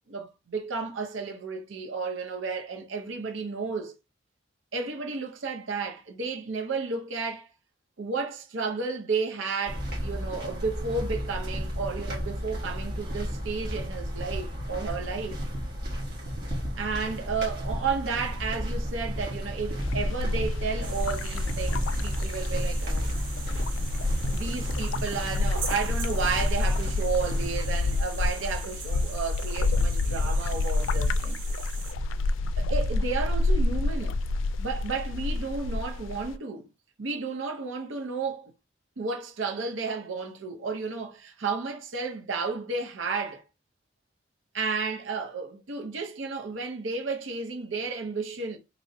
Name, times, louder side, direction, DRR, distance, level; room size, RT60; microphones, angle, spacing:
voice 1, 0.1-3.9 4.7-7.5 8.0-15.4 16.8-23.0 24.3-31.4 32.6-34.2 34.6-36.7 37.0-38.5 39.0-43.4 44.5-48.6, right 4 dB, 90° right, 0.7 m, -32 dB
sound 1, 9.6-27.7, equal, 55° right, 1.4 m, -32 dB
sound 2, 19.8-36.4, left 2 dB, 90° left, 0.3 m, -29 dB
sound 3, 20.8-31.9, right 6 dB, 70° right, 1.1 m, -42 dB
3.0 x 2.6 x 3.9 m
head